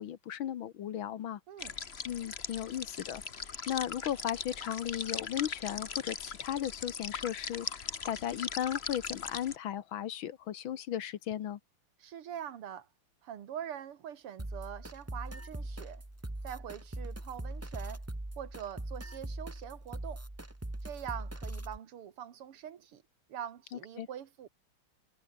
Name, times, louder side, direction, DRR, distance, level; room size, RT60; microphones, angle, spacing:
voice 1, 0.0-1.4 2.1-3.2 3.7-11.6 23.7-24.1, left 10 dB, 65° left, 1.8 m, -36 dB
sound 1, 1.6-9.6, left 6 dB, 35° left, 1.3 m, -40 dB
voice 2, 12.0-12.9 13.2-16.0 16.4-18.0 18.4-20.2 20.8-23.0 23.3-24.5, right 9 dB, 90° right, 2.4 m, -43 dB
sound 2, 14.4-21.8, right 1 dB, 10° right, 1.1 m, -41 dB
omnidirectional pair, 2.4 m